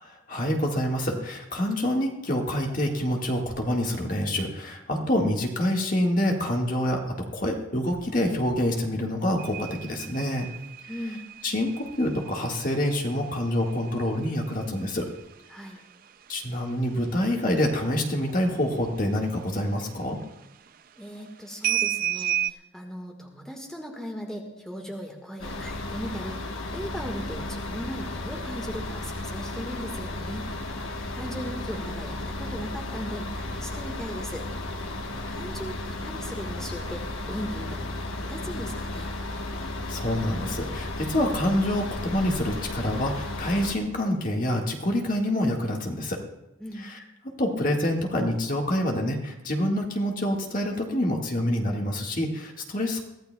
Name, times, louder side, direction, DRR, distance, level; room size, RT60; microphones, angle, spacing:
voice 1, 0.0-7.0 7.3-10.5 11.4-15.1 16.3-20.2 39.5-46.2 46.8-47.0 47.4-53.0, left 1 dB, 40° left, 1 dB, 1.7 m, -27 dB
sound 1, 9.4-17.7 17.9-18.4 18.8-19.9 20.2-20.8 21.6-22.5, right 13 dB, 45° right, 0.4 m, -33 dB
voice 2, 10.9-11.2 15.5-15.8 21.0-26.4 26.7-30.5 31.1-34.5 35.3-39.2 46.6-46.9, equal, 5° left, 0 dB, 1.5 m, -38 dB
sound 2, 25.4-43.8, left 2 dB, 80° left, 1.2 m, -34 dB
23.0 x 15.5 x 2.3 m, 0.92 s
head